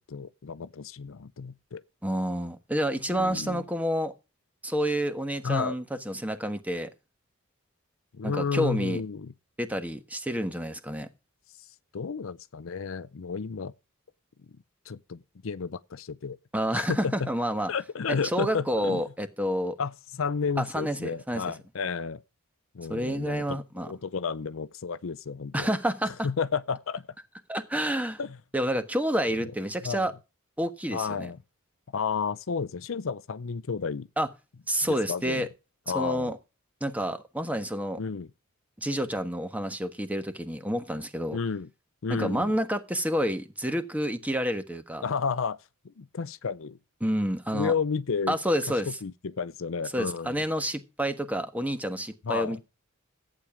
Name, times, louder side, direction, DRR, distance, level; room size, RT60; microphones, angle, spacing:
voice 1, 0.1-1.8 3.1-3.6 5.4-5.8 8.1-9.3 11.6-11.7 11.9-13.7 14.9-16.4 16.7-17.3 17.7-19.0 19.8-22.2 22.7-25.7 26.1-27.1 28.2-28.4 29.8-30.1 30.9-31.4 31.9-34.1 34.8-35.5 35.9-36.3 38.0-38.3 41.3-41.7 42.0-42.5 45.0-45.6 45.8-46.8 47.5-48.4 48.9-50.4 52.2-52.6, left 5 dB, 65° left, 0.5 m, -32 dB
voice 2, 2.0-4.1 4.6-6.9 8.2-9.0 9.6-11.1 16.5-17.7 18.1-19.8 20.6-21.4 22.9-23.9 25.5-26.3 27.5-28.2 28.5-30.1 30.6-31.3 34.2-34.3 34.7-35.5 35.9-36.4 36.8-38.0 38.8-41.4 42.1-45.0 47.0-47.7 48.3-48.9 49.9-52.6, equal, 5° right, 1.3 m, -29 dB
14.5 x 8.9 x 4.9 m
head